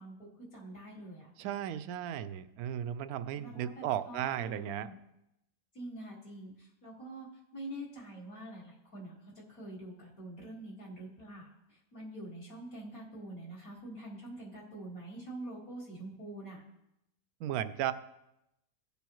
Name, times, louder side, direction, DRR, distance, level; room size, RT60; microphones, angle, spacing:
voice 1, 0.0-1.3 3.3-5.0 5.7-7.3 7.5-16.6, right 1 dB, 60° left, -6 dB, 2.3 m, -45 dB
voice 2, 1.4-4.9 17.4-17.9, right 11 dB, 70° right, 11 dB, 1.0 m, -35 dB
16.5 x 6.9 x 3.0 m, 0.87 s
omnidirectional pair, 1.7 m